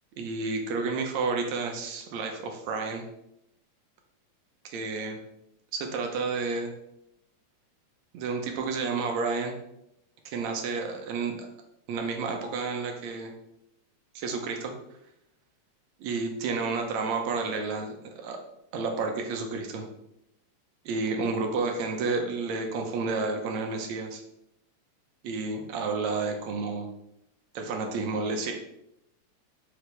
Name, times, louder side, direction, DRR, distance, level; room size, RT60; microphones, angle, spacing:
voice 1, 0.2-3.0 4.6-5.2 5.7-6.7 8.1-9.6 10.3-11.3 11.9-13.3 14.2-14.7 16.0-18.4 18.7-19.9 20.9-24.2 25.2-26.9 27.6-28.5, right 4 dB, 75° right, 3 dB, 2.1 m, -30 dB
8.2 x 4.9 x 3.4 m, 0.81 s
omnidirectional pair, 3.4 m